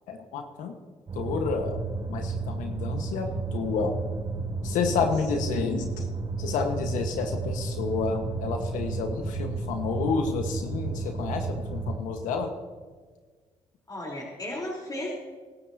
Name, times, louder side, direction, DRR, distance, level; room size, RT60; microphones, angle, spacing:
voice 1, 0.1-0.7 1.1-1.8 2.1-4.0 4.6-6.1 6.4-12.5, left 5 dB, 85° left, 4 dB, 1.5 m, -30 dB
sound 1, 1.1-12.0, right 3 dB, 45° right, 4.9 m, -32 dB
voice 2, 13.9-15.1, left 1 dB, 30° left, -3 dB, 4.0 m, -35 dB
24.0 x 12.5 x 2.9 m, 1.4 s
supercardioid pair, 60°, 13 cm